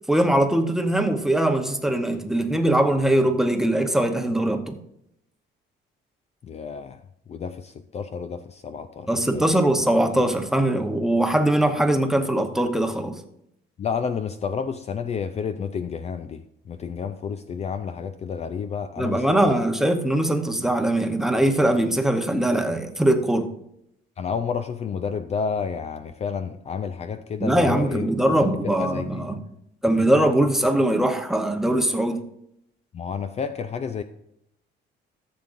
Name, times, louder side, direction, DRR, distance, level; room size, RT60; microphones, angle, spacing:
voice 1, 0.1-4.8 9.1-13.1 19.0-23.5 27.4-29.4 29.8-32.2, right 1 dB, ahead, 5 dB, 0.9 m, -21 dB
voice 2, 6.4-7.0 7.3-9.4 13.8-19.6 24.2-28.1 28.4-29.2 32.9-34.0, left 6 dB, 35° left, 10 dB, 0.4 m, -30 dB
14.5 x 7.5 x 2.6 m, 0.76 s
cardioid pair, 150°, 19 cm